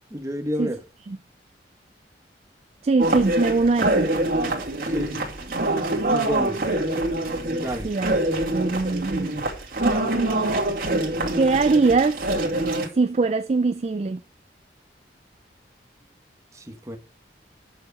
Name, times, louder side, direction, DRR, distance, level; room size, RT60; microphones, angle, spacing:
voice 1, 0.1-0.8 4.8-5.1 6.0-6.6 7.5-7.9 16.5-17.0, equal, 15° right, 1.2 m, -30 dB
voice 2, 2.8-4.1 7.8-8.2 8.5-9.3 11.3-12.2 12.9-14.2, right 3 dB, 35° right, 0.4 m, -21 dB
sound 1, 3.0-12.9, right 1 dB, 55° right, 2.5 m, -25 dB
9.3 x 7.0 x 5.3 m
head